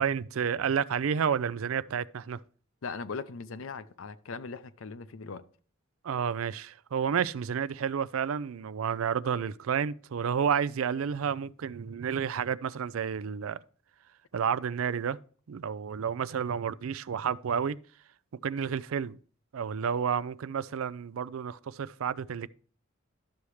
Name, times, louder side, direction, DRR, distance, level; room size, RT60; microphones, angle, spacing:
voice 1, 0.0-2.4 6.0-13.6 14.3-15.2 15.5-17.8 18.4-19.2 19.5-22.5, right 7 dB, 85° right, 0.4 m, -30 dB
voice 2, 2.8-5.4, left 4 dB, 75° left, 0.6 m, -39 dB
11.5 x 7.0 x 3.2 m
head